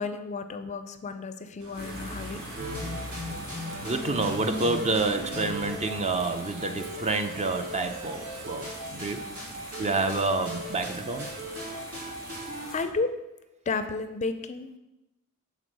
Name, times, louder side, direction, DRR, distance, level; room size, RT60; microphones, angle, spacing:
voice 1, 0.0-2.4 12.7-13.2 13.7-14.8, left 4 dB, 35° left, 10 dB, 0.4 m, -32 dB
sound 1, 1.6-8.5, right 3 dB, 70° right, 0.8 m, -50 dB
sound 2, 1.8-12.8, right 1 dB, 50° right, 1.9 m, -42 dB
sound 3, 2.6-12.7, equal, 85° right, 2.6 m, -38 dB
voice 2, 3.8-9.3 9.8-11.3, right 3 dB, 30° right, 8 dB, 0.5 m, -28 dB
6.9 x 4.1 x 6.1 m, 0.97 s
head